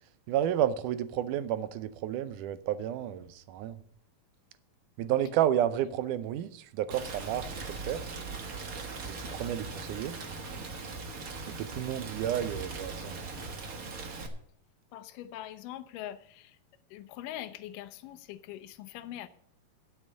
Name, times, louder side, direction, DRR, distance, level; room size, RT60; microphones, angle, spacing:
voice 1, 0.3-3.8 5.0-8.0 9.1-10.2 11.5-13.3, right 11 dB, 80° right, 2.1 m, -31 dB
Rain, 6.9-14.3, right 3 dB, 55° right, 1.0 m, -40 dB
voice 2, 14.9-16.6 16.9-19.3, left 12 dB, 80° left, 2.3 m, -42 dB
12.5 x 7.3 x 6.6 m
omnidirectional pair, 3.8 m